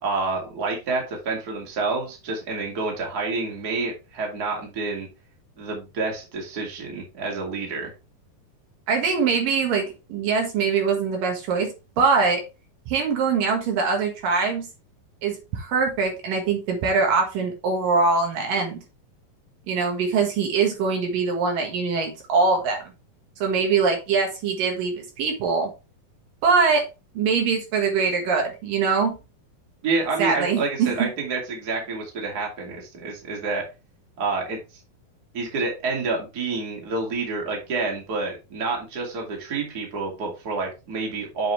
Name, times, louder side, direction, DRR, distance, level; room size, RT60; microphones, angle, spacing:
voice 1, 0.0-5.1 5.6-7.9 29.8-33.6 34.2-34.6 35.3-41.5, right 3 dB, 30° right, 2.5 m, -28 dB
voice 2, 8.9-12.4 12.9-14.7 15.2-18.8 19.7-22.9 23.4-25.7 26.4-26.8 27.1-29.2 30.2-31.1, right 5 dB, 70° right, 3.1 m, -23 dB
7.9 x 5.5 x 3.3 m
omnidirectional pair, 4.2 m